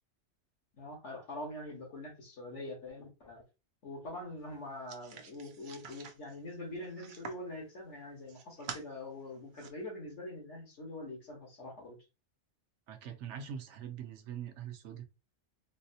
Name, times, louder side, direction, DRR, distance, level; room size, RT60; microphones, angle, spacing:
voice 1, 0.8-3.4 3.8-12.0, left 1 dB, 75° left, 1.7 m, -44 dB
sound 1, 4.9-7.5 8.0-8.9 9.3-9.7, right 6 dB, 60° right, 0.5 m, -47 dB
voice 2, 12.9-15.0, right 8 dB, 80° right, 0.9 m, -43 dB
4.0 x 2.0 x 2.7 m
omnidirectional pair, 1.2 m